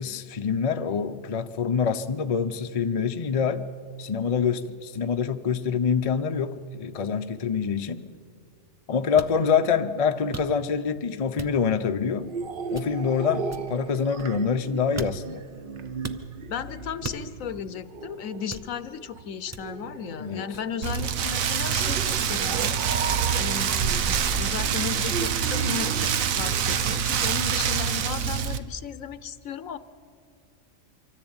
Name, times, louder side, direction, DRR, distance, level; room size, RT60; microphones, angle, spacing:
voice 1, 0.0-3.7 4.0-8.1 8.9-12.3 12.7-15.4 20.2-20.5, left 6 dB, 35° left, 8 dB, 0.6 m, -26 dB
sound 1, 9.2-9.4 10.3-10.8 11.4-11.8 12.7-13.1 13.5-14.6 15.0-15.4 16.0-16.3 17.0-17.5 18.5-19.0 19.5-19.9 20.5-20.7, right 2 dB, 20° right, 0.4 m, -40 dB
sound 2, 12.2-26.8, right 5 dB, 45° right, 0.9 m, -37 dB
voice 2, 16.5-29.8, left 8 dB, 75° left, 14 dB, 1.2 m, -35 dB
Rain, 20.8-28.6, right 7 dB, 85° right, 1.2 m, -25 dB
24.5 x 14.0 x 8.8 m, 2.2 s
omnidirectional pair, 1.4 m